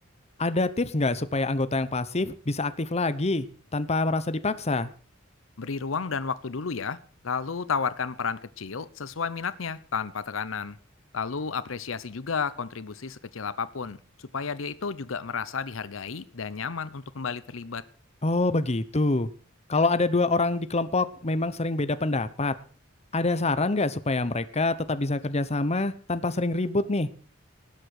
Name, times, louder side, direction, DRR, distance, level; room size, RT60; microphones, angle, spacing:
voice 1, 0.4-3.5 3.7-4.9 18.2-19.3 19.7-22.5 23.1-27.1, left 2 dB, 35° left, 13 dB, 0.9 m, -26 dB
voice 2, 5.6-7.0 7.2-10.8 11.1-17.8, left 5 dB, 75° left, 16 dB, 0.8 m, -32 dB
18.5 x 7.9 x 6.5 m, 0.42 s
head